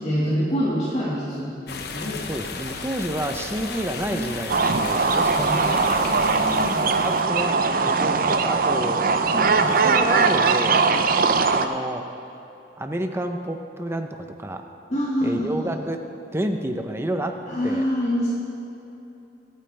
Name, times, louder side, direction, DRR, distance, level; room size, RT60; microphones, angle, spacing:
voice 1, 0.0-2.2 4.1-4.3 5.3-6.8 9.3-9.7 14.9-15.8 17.5-18.3, equal, 40° left, -7 dB, 1.9 m, -26 dB
sound 1, 1.7-7.2, left 4 dB, 65° left, 0.9 m, -34 dB
voice 2, 2.3-6.2 6.5-9.0 9.8-10.8 11.5-12.0 12.8-14.6 15.2-16.0 16.3-17.4 17.6-17.8, right 1 dB, 15° right, 5 dB, 0.8 m, -30 dB
sound 2, 4.5-11.7, right 4 dB, 55° right, 0.6 m, -20 dB
23.5 x 9.0 x 3.4 m, 2.9 s
head